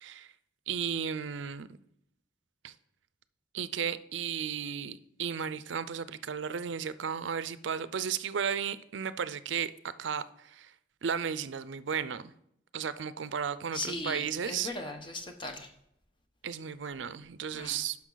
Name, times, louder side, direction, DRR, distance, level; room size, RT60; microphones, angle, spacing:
voice 1, 0.0-0.3 0.7-1.7 2.6-2.7 3.5-9.7 10.0-10.7 11.0-12.3 12.7-14.7 16.4-18.0, right 7 dB, 75° right, 0.5 m, -34 dB
voice 2, 13.7-15.7 17.5-17.8, left 2 dB, 25° left, 1.0 m, -38 dB
11.0 x 5.8 x 3.9 m
head